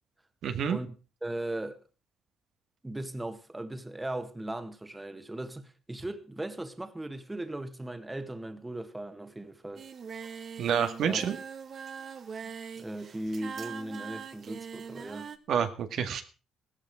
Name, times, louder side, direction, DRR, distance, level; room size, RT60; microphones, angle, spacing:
voice 1, 0.4-0.8 10.6-11.4 15.5-16.2, right 8 dB, 75° right, 1.9 m, -28 dB
voice 2, 1.2-1.8 2.8-9.9 11.1-11.2 12.4-15.3, right 1 dB, 15° right, 1.9 m, -38 dB
Singing, 9.8-15.4, right 6 dB, 50° right, 1.6 m, -42 dB
15.5 x 13.5 x 4.9 m
cardioid pair, 90°, 0 cm